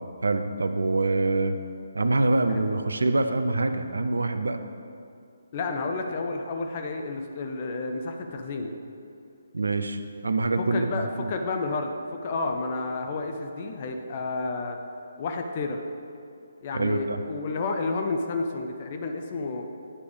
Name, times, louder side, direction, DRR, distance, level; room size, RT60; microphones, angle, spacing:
voice 1, 0.0-1.6 1.9-4.6 9.5-11.3 16.7-17.2, right 2 dB, 75° right, 9 dB, 0.5 m, -25 dB
voice 2, 5.5-8.7 10.6-14.8 15.2-15.8 16.6-19.7, left 3 dB, 40° left, 4 dB, 0.5 m, -31 dB
9.7 x 3.4 x 5.0 m, 2.5 s
figure-of-eight pair, 140°, 0 cm